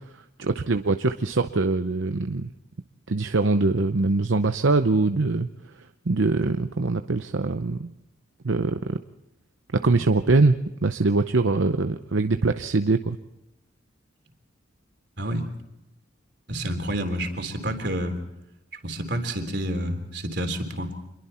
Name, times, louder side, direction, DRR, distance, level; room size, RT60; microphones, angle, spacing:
voice 1, 0.4-2.5 3.1-5.5 6.1-7.9 8.4-9.0 9.7-13.2, right 3 dB, 75° right, 8 dB, 0.7 m, -23 dB
voice 2, 16.5-18.2 18.8-20.9, right 1 dB, 60° right, 5 dB, 3.5 m, -29 dB
27.0 x 22.0 x 4.4 m, 0.94 s
head